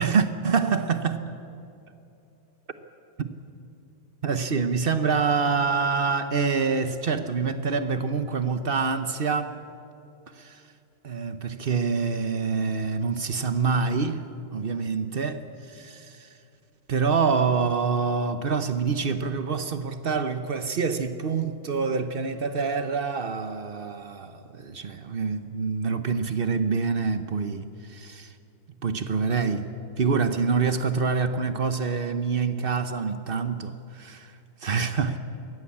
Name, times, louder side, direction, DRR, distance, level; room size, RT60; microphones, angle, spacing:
voice 1, 0.0-1.4 3.2-3.3 4.2-9.6 10.3-10.7 11.0-16.4 16.9-28.4 28.8-35.2, right 5 dB, 60° right, 0.6 m, -26 dB
22.5 x 17.5 x 8.6 m
omnidirectional pair, 2.3 m